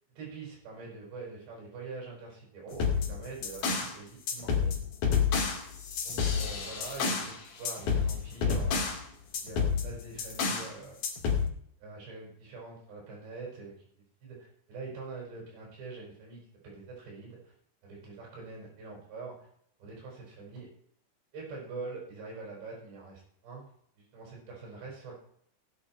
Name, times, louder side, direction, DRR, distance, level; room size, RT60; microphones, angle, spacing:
voice 1, 0.2-4.7 6.0-8.8 9.4-11.0 11.8-13.7 14.2-17.5 17.8-19.5 19.8-20.7 21.3-23.7 24.0-25.1, right 3 dB, 80° right, -3 dB, 7.7 m, -44 dB
sound 1, 2.7-3.9 4.3-7.3 7.6-9.0 9.3-10.7 11.0-11.5, left 6 dB, 60° left, 4.0 m, -29 dB
16.0 x 10.5 x 4.5 m, 0.65 s
omnidirectional pair, 4.9 m